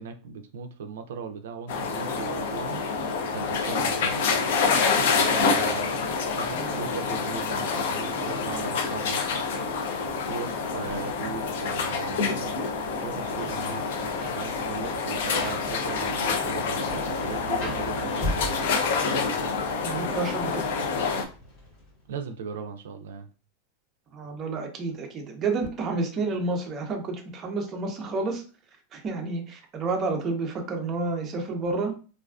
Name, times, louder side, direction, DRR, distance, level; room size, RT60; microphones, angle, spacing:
voice 1, 0.0-2.8 3.1-4.3 5.2-9.2 10.2-12.6 13.0-13.9 14.2-18.8 22.1-23.3, right 6 dB, 80° right, 7 dB, 0.3 m, -38 dB
sound 1, 1.7-21.2, left 5 dB, 65° left, 0.4 m, -27 dB
voice 2, 6.5-6.8 19.8-20.7 24.1-28.4 28.9-31.9, right 3 dB, 20° right, 2 dB, 0.5 m, -30 dB
Rain, 13.0-22.1, left 1 dB, 40° left, 0.9 m, -40 dB
2.4 x 2.3 x 2.3 m, 0.36 s
supercardioid pair, 165°, 0 cm